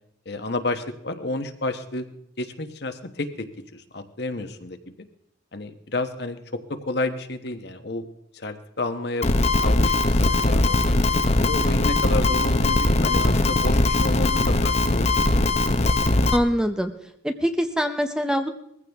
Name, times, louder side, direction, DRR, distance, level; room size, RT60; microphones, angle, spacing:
voice 1, 0.2-2.1 2.4-3.5 3.7-4.8 5.5-8.1 8.3-9.3 9.6-11.0 11.4-15.1, left 2 dB, 60° left, 8 dB, 1.1 m, -30 dB
sound 1, 9.2-16.4, left 2 dB, 35° left, 0.8 m, -20 dB
voice 2, 16.3-16.9 17.2-18.5, equal, 5° right, 7 dB, 0.6 m, -23 dB
21.0 x 15.0 x 3.5 m, 0.75 s
head